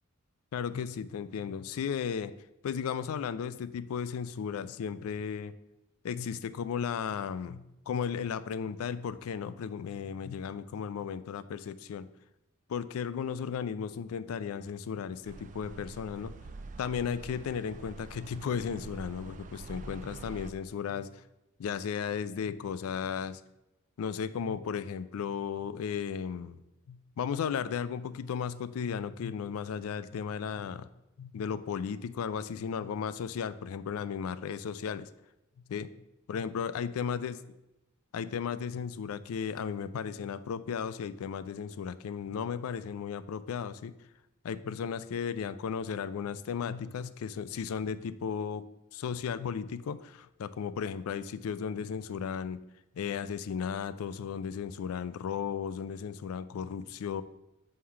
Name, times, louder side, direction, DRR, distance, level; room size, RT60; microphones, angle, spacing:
voice 1, 0.5-2.3 2.6-5.5 6.0-12.1 12.7-16.3 16.8-21.1 21.6-23.4 24.0-26.6 26.9-30.9 31.2-35.1 35.7-35.9 36.3-37.3 38.1-43.9 44.4-48.6 48.9-52.6 53.0-57.2, left 7 dB, 80° left, 14 dB, 0.3 m, -35 dB
sound 1, 15.2-20.5, right 3 dB, 35° right, 0.3 m, -46 dB
5.5 x 3.2 x 5.7 m, 0.92 s
head